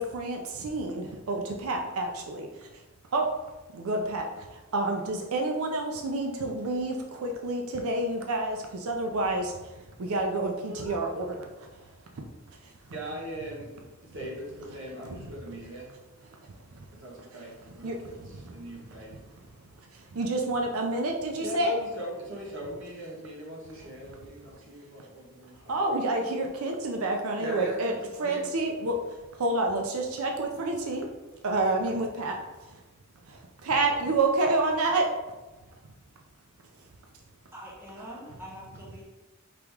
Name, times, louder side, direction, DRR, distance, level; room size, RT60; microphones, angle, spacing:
voice 1, 0.0-2.8 3.1-3.3 3.7-11.9 12.6-12.7 15.1-15.3 16.7-16.8 17.8-18.8 19.1-19.2 19.9-21.8 25.7-27.9 28.2-31.1 31.4-32.3 32.7-32.8 33.3-35.0, right 2 dB, 85° right, 2 dB, 0.5 m, -29 dB
voice 2, 10.7-11.1 12.9-13.7 14.0-15.9 16.9-19.2 21.4-25.8 27.4-28.0 28.2-28.4, right 1 dB, 60° right, -3 dB, 1.3 m, -40 dB
voice 3, 37.5-39.0, equal, 10° right, -6 dB, 1.1 m, -44 dB
4.9 x 3.0 x 3.6 m, 1.1 s
head